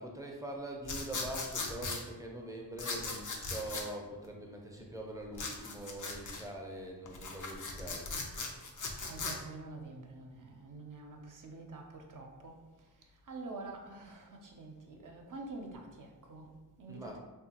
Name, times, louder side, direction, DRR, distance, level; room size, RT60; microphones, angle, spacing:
voice 1, 0.0-8.1 16.9-17.2, right 1 dB, 10° right, 0 dB, 0.5 m, -43 dB
sound 1, 0.8-2.0 2.8-3.9 5.3-6.4 7.1-9.4, left 3 dB, 50° left, 0.5 m, -38 dB
voice 2, 9.0-12.6 13.3-17.2, right 2 dB, 50° right, 2 dB, 0.5 m, -47 dB
2.8 x 2.2 x 2.8 m, 1.2 s
cardioid pair, 65°, 40 cm